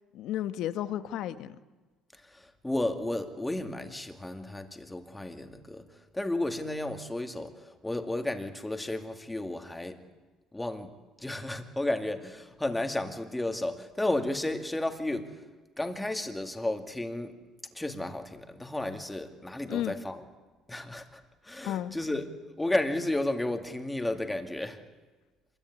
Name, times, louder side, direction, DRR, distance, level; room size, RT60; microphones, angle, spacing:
voice 1, 0.1-1.6 19.7-20.0 21.6-21.9, left 12 dB, 60° left, 1.3 m, -33 dB
voice 2, 2.3-5.9 6.1-10.0 10.5-10.9 11.2-15.3 15.8-17.3 17.7-20.2 20.7-22.3 22.6-24.8, left 1 dB, 5° left, 2.3 m, -33 dB
26.5 x 21.5 x 9.8 m
cardioid pair, 155°, 0 cm